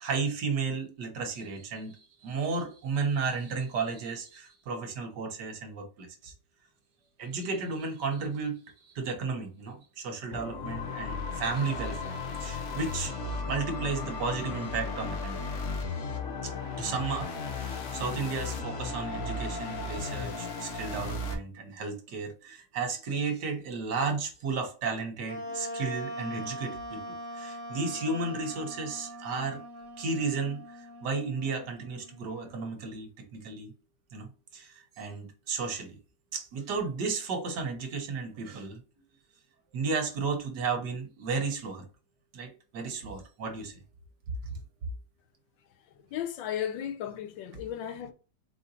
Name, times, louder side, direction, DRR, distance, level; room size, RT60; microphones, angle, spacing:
voice 1, 0.0-6.3 7.2-8.6 8.9-13.2 13.5-15.4 16.4-29.6 30.0-33.7 34.1-36.0 36.3-38.8 39.7-41.9 42.3-43.8, right 4 dB, 70° right, 1.5 m, -33 dB
sound 1, 10.3-21.3, left 3 dB, 60° left, 0.8 m, -35 dB
Wind instrument woodwind instrument, 25.2-32.7, equal, 15° left, 1.4 m, -41 dB
voice 2, 45.8-48.1, left 10 dB, 85° left, 1.3 m, -35 dB
4.2 x 3.8 x 2.7 m
omnidirectional pair, 2.0 m